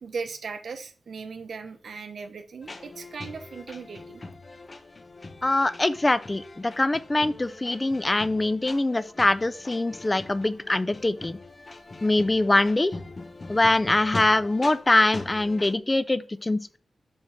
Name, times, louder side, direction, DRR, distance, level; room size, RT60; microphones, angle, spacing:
voice 1, 0.0-4.2 8.0-8.1, right 5 dB, 75° right, 9 dB, 0.8 m, -38 dB
sound 1, 2.6-15.8, left 2 dB, 35° left, 0.9 m, -42 dB
voice 2, 5.4-11.4 12.0-12.9 13.5-16.8, left 2 dB, 20° left, 15 dB, 0.4 m, -23 dB
8.0 x 3.6 x 5.7 m, 0.40 s
wide cardioid pair, 100°, 0 cm